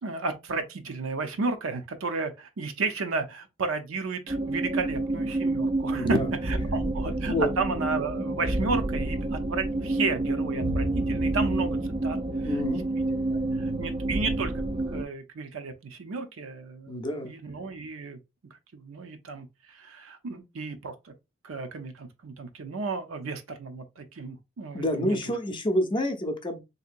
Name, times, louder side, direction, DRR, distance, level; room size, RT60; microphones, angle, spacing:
voice 1, 0.0-12.2 12.9-13.0 13.3-18.2 18.7-21.1 21.4-25.3, right 3 dB, 80° right, 0.6 m, -33 dB
sound 1, 4.3-15.0, right 2 dB, 30° right, 0.4 m, -28 dB
voice 2, 5.9-6.3 6.8-6.9 7.3-7.5 12.4-12.8 16.9-17.3 24.7-26.6, left 1 dB, 25° left, 0.6 m, -28 dB
3.6 x 2.8 x 2.5 m
head